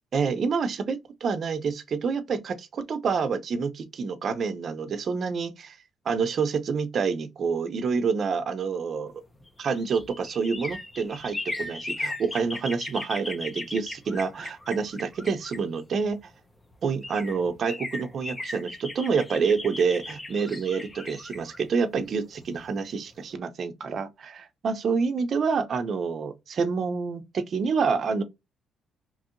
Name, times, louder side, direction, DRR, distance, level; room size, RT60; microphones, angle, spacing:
voice 1, 0.1-5.7 6.1-9.1 9.6-16.2 16.8-28.2, right 5 dB, 55° right, 0.6 m, -28 dB
sound 1, 9.3-16.2 16.7-16.8 17.0-22.8 23.1-23.2, left 2 dB, 20° left, 0.7 m, -37 dB
3.0 x 2.7 x 2.4 m
cardioid pair, 90°, 0 cm